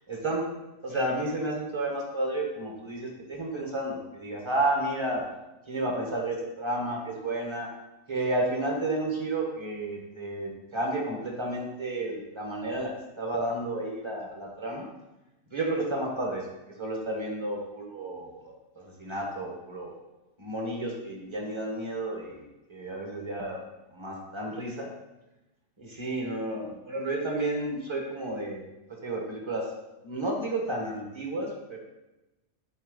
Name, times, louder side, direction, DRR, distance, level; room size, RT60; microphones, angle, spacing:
voice 1, 0.1-0.5 0.8-5.2 5.7-7.7 8.1-14.9 15.5-16.5 16.8-20.0 20.4-23.6 23.9-24.9 25.8-28.6 29.0-29.7 30.0-31.8, right 1 dB, 20° right, -1 dB, 1.4 m, -31 dB
11.5 x 4.4 x 4.0 m, 1.0 s
omnidirectional pair, 1.8 m